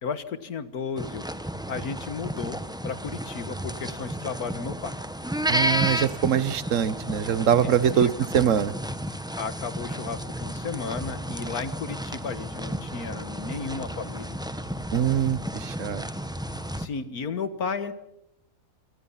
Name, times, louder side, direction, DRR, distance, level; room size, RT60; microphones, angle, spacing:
voice 1, 0.0-1.2 1.7-5.0 7.6-8.1 9.4-14.4 16.7-17.9, left 5 dB, 85° left, 12 dB, 2.0 m, -34 dB
sound 1, 1.0-16.9, equal, 5° right, 1.1 m, -32 dB
voice 2, 5.5-8.7 14.9-15.4 15.7-16.0, right 9 dB, 60° right, 16 dB, 1.4 m, -23 dB
27.0 x 25.0 x 5.8 m, 0.82 s
omnidirectional pair, 1.5 m